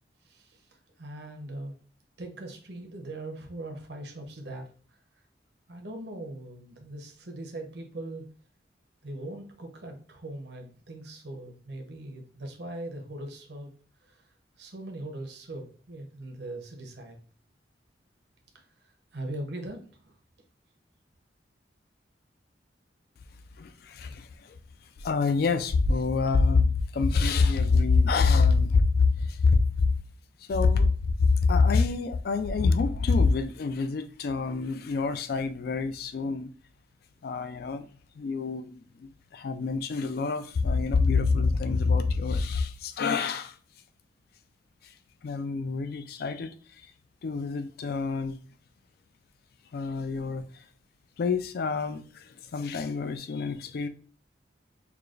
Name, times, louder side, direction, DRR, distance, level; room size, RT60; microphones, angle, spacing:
voice 1, 0.2-1.7 2.2-4.7 5.7-8.3 9.0-13.7 14.0-14.3 14.6-17.2 18.5-20.1, right 1 dB, 65° right, 0.8 m, -40 dB
voice 2, 23.6-24.6 25.0-29.9 30.5-36.5 37.2-37.9 38.2-43.6 44.8-44.9 45.2-46.5 47.2-48.4 49.7-50.4 51.2-53.9, left 4 dB, 55° left, 0.3 m, -26 dB
4.8 x 2.3 x 2.4 m
head